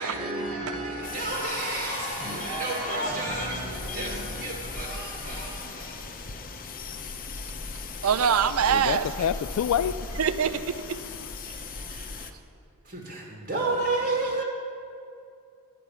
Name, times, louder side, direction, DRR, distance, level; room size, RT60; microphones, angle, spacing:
voice 1, 0.0-6.4 12.8-14.4, right 2 dB, 50° right, 1.6 m, -31 dB
sound 1, 1.0-12.3, left 4 dB, 40° left, 0.7 m, -38 dB
voice 2, 8.0-9.3 10.2-11.0 11.5-11.6 11.9-12.1, right 7 dB, 70° right, 0.5 m, -25 dB
voice 3, 8.7-10.2, left 8 dB, 80° left, 0.3 m, -27 dB
12.0 x 9.0 x 5.6 m
head